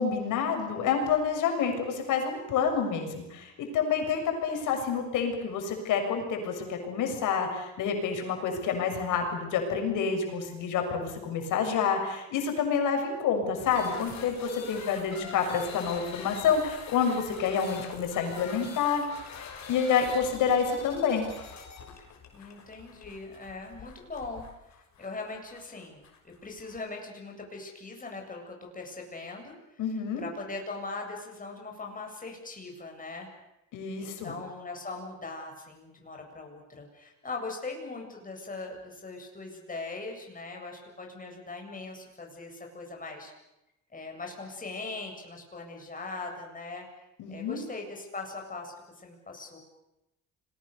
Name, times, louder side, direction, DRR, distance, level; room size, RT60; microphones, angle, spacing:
voice 1, 0.0-19.0 19.7-21.2 29.8-30.2 33.7-34.3 47.2-47.6, left 6 dB, 85° left, 4 dB, 6.8 m, -28 dB
sound 1, 13.6-26.8, left 6 dB, 65° left, 6.1 m, -45 dB
voice 2, 14.7-15.5 22.3-29.8 30.2-33.3 34.0-43.3 43.9-49.6, left 3 dB, 25° left, 1 dB, 8.0 m, -40 dB
30.0 x 22.5 x 6.8 m, 0.91 s
cardioid pair, 90°, 30 cm